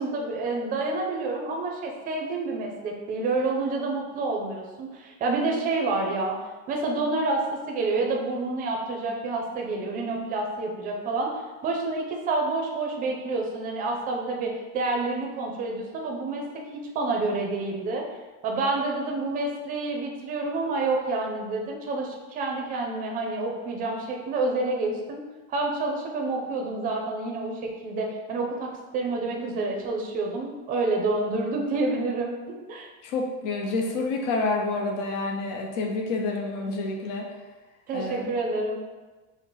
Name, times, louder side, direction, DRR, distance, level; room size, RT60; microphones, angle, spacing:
voice 1, 0.0-6.4 6.7-11.3 11.6-18.1 18.4-25.2 25.5-32.9 37.9-38.8, right 3 dB, 25° right, 0 dB, 0.4 m, -28 dB
voice 2, 33.0-37.3 37.9-38.3, left 3 dB, 80° left, 1 dB, 0.8 m, -28 dB
4.5 x 2.0 x 3.8 m, 1.2 s
cardioid pair, 160°, 36 cm